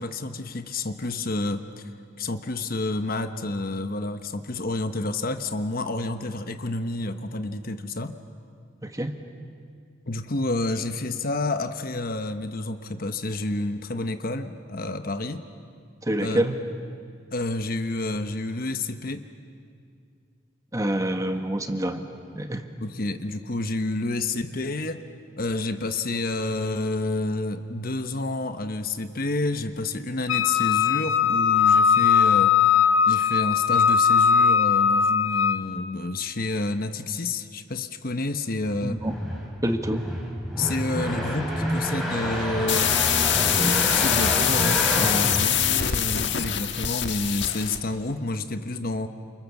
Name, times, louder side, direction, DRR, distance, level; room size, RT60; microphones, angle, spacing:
voice 1, 0.0-1.8 2.2-8.2 10.1-15.4 16.2-16.4 17.3-19.3 22.8-25.0 25.4-32.8 33.1-39.0 40.6-42.9 43.4-49.1, left 2 dB, 45° left, 8 dB, 1.1 m, -29 dB
voice 2, 8.8-9.1 16.0-16.5 20.7-22.1 22.3-22.6 38.8-39.2 39.6-40.1, right 1 dB, 15° right, 6 dB, 1.5 m, -26 dB
Wind instrument woodwind instrument, 30.3-35.6, left 7 dB, 90° left, 1.6 m, -19 dB
sound 1, 38.7-46.3, equal, ahead, 4.1 m, -28 dB
sound 2, 42.7-47.8, left 10 dB, 60° left, 1.5 m, -24 dB
29.5 x 28.5 x 7.2 m, 2.3 s
head